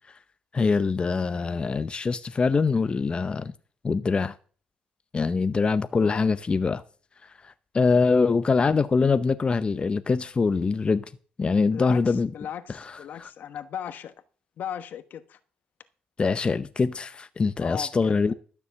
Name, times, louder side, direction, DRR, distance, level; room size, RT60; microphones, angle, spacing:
voice 1, 0.5-3.5 3.8-4.3 5.1-6.8 7.4-11.0 11.4-12.3 13.2-13.3 16.2-18.3, left 4 dB, 30° left, 0.7 m, -23 dB
voice 2, 5.9-6.3 11.7-14.1 14.6-15.4 17.6-18.3, left 9 dB, 65° left, 1.1 m, -37 dB
12.5 x 7.0 x 6.9 m
cardioid pair, 85°, 3 cm